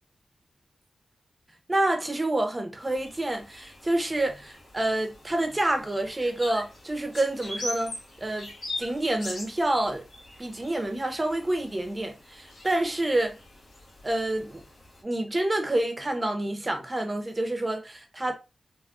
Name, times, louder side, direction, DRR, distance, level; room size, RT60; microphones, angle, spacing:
voice 1, 1.7-8.5 8.8-10.0 10.4-13.4 14.0-14.6 15.0-18.3, right 1 dB, 30° right, 0.8 m, -28 dB
sound 1, 2.8-15.0, left 2 dB, 60° left, 1.4 m, -42 dB
3.6 x 2.2 x 2.4 m
cardioid pair, 65°, 0 cm